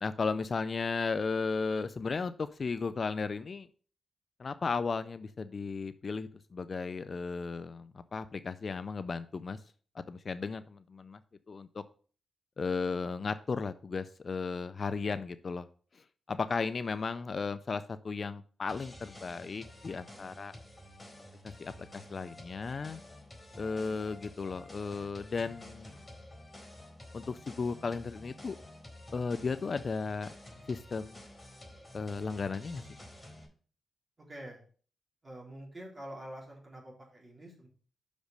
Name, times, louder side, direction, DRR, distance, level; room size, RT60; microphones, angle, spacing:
voice 1, 0.0-3.7 4.4-9.6 10.1-11.2 11.5-11.8 12.6-15.7 15.9-20.5 21.4-23.0 23.6-25.9 27.1-28.6 29.1-30.3 30.7-31.2 31.9-32.8, left 4 dB, 40° left, 12 dB, 0.4 m, -35 dB
sound 1, 18.7-33.5, left 1 dB, 15° left, 4.2 m, -51 dB
voice 2, 34.2-34.6 35.2-37.7, right 1 dB, 25° right, -2 dB, 3.7 m, -46 dB
6.4 x 5.1 x 6.5 m, 0.43 s
cardioid pair, 100°, 0 cm